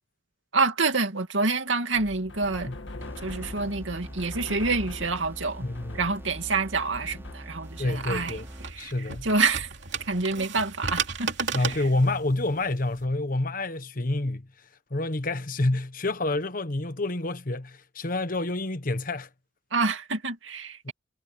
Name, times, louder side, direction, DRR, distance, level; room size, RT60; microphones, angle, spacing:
voice 1, 0.5-2.7 3.2-5.6 5.9-8.4 8.7-8.9 9.2-9.7 10.0-11.8 19.7-20.9, right 3 dB, 85° right, 2.5 m, -27 dB
sound 1, 1.9-7.4, left 2 dB, 75° left, 1.8 m, -42 dB
sound 2, 3.0-9.0, equal, 15° right, 3.5 m, -43 dB
voice 2, 5.6-6.0 7.8-8.5 8.8-9.3 11.5-14.5 14.9-19.3 20.8-20.9, left 2 dB, 45° left, 1.2 m, -28 dB
sound 3, 7.6-13.0, right 6 dB, 65° right, 2.9 m, -35 dB
head